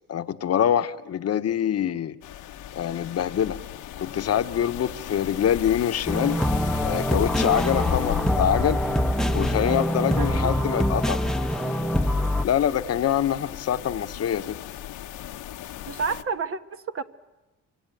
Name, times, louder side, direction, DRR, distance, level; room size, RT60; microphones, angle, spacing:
voice 1, 0.1-2.1 2.7-3.6 4.0-6.4 6.8-8.8 9.3-11.2 12.4-14.6, left 10 dB, 55° left, 11 dB, 1.0 m, -25 dB
sound 1, 2.2-16.2, left 11 dB, 80° left, 1.1 m, -36 dB
sound 2, 6.1-12.5, equal, ahead, 0.9 m, -24 dB
voice 2, 10.1-10.5 15.9-17.0, right 5 dB, 45° right, 9 dB, 1.2 m, -30 dB
26.0 x 24.0 x 9.2 m, 1.1 s
cardioid pair, 90°, 30 cm